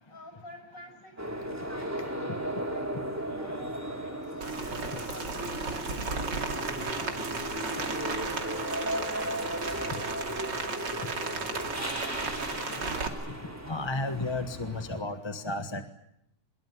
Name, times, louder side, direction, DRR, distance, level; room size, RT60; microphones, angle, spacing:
voice 1, 0.1-4.5 5.2-8.4 8.9-12.4, left 1 dB, 45° left, 5 dB, 7.6 m, -52 dB
sound 1, 1.2-15.0, right 1 dB, 10° right, 3.5 m, -36 dB
sound 2, 4.4-10.1, left 2 dB, 80° left, 5.0 m, -57 dB
Rain, 4.4-13.1, right 4 dB, 70° right, 3.2 m, -35 dB
voice 2, 13.7-15.8, left 2 dB, 15° left, 8 dB, 1.2 m, -32 dB
25.0 x 22.0 x 9.5 m, 0.80 s
omnidirectional pair, 2.0 m